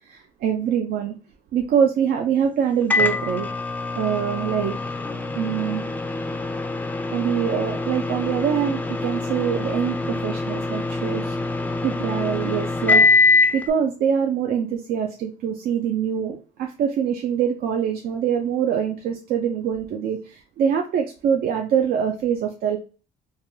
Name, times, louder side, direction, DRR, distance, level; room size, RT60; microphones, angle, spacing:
voice 1, 0.0-1.1 1.5-3.5 4.0-4.8 5.3-5.8 7.1-11.4 11.8-13.0 13.3-22.8, right 8 dB, 65° right, 3 dB, 0.4 m, -24 dB
Microwave oven, 2.9-13.7, left 3 dB, 10° left, 0.4 m, -24 dB
3.2 x 2.2 x 2.6 m, 0.37 s
cardioid pair, 110°, 17 cm